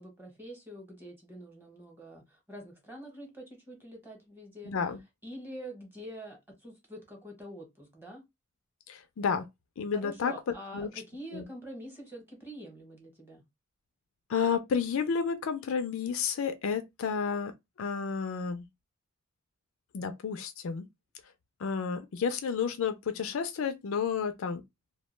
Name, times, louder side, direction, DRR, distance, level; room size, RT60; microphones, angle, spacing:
voice 1, 0.0-4.7 5.2-8.2 9.9-13.4, right 1 dB, 10° right, 1.0 m, -45 dB
voice 2, 4.6-5.0 8.9-9.4 9.8-10.9 11.3-11.4 14.3-17.5 17.8-18.7 19.9-20.9 21.6-24.6, left 6 dB, 70° left, 0.4 m, -31 dB
2.2 x 2.1 x 3.0 m
head